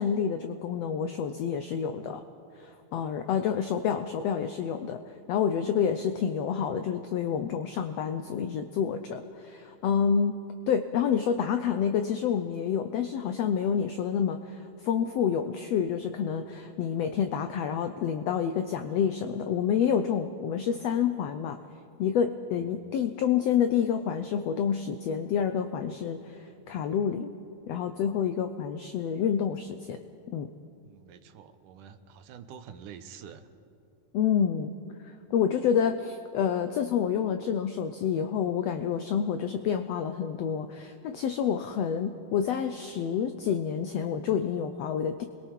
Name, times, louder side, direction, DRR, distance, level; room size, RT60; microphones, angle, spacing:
voice 1, 0.0-2.2 2.6-10.4 10.7-21.6 22.0-27.3 27.7-30.0 30.3-30.5 34.1-34.7 35.0-45.2, left 8 dB, 80° left, 8 dB, 1.4 m, -28 dB
voice 2, 30.8-33.5, right 7 dB, 80° right, 9 dB, 2.4 m, -47 dB
27.5 x 21.5 x 4.6 m, 2.6 s
omnidirectional pair, 3.7 m